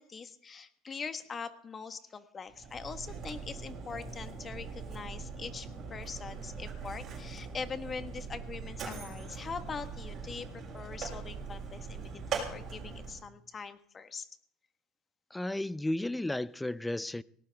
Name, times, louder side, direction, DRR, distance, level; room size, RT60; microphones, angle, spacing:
voice 1, 0.0-14.2, left 5 dB, 25° left, 1.3 m, -42 dB
Mechanisms, 2.5-13.3, right 5 dB, 40° right, 6.6 m, -41 dB
voice 2, 15.3-17.2, left 1 dB, 5° left, 0.5 m, -33 dB
19.0 x 18.0 x 3.5 m
supercardioid pair, 120°, 0 cm